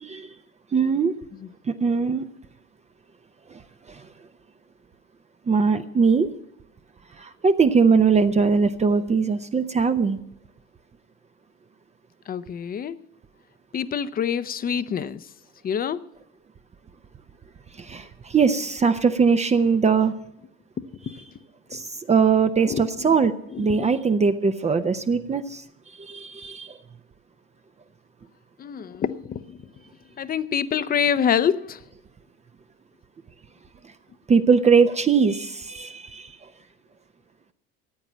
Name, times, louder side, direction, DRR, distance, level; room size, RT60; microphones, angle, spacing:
voice 1, 0.7-1.1 1.7-2.2 3.5-3.6 3.9-4.0 5.5-6.3 7.2-10.2 17.8-20.1 21.7-25.6 26.0-26.8 34.3-36.4, right 5 dB, 20° right, 0.7 m, -21 dB
voice 2, 12.3-13.0 13.7-15.3 15.6-16.0 21.1-21.2 21.7-21.8 22.7-23.2 23.5-23.9 24.2-24.3 28.6-29.6 30.2-31.8, left 8 dB, 30° left, 0.7 m, -26 dB
14.5 x 8.8 x 7.3 m
supercardioid pair, 95°, 32 cm